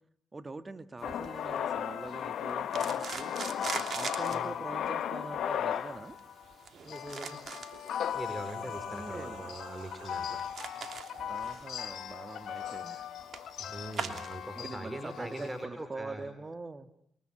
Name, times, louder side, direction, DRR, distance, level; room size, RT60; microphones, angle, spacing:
voice 1, 0.3-3.3 3.9-6.2 8.6-9.6 11.3-13.1 14.5-16.9, right 3 dB, 30° right, 11 dB, 2.0 m, -43 dB
Male speech man speaking, 1.0-6.5 6.9-15.6, left 9 dB, 70° left, 1.2 m, -37 dB
sound 1, 1.0-14.7, right 5 dB, 60° right, 3.0 m, -44 dB
voice 2, 6.8-7.4 8.1-10.4 13.6-16.2, right 1 dB, 15° right, 8 dB, 5.1 m, -42 dB
sound 2, 7.4-12.0, right 5 dB, 75° right, 4.6 m, -52 dB
28.0 x 23.5 x 9.1 m, 0.73 s
hypercardioid pair, 45°, 0 cm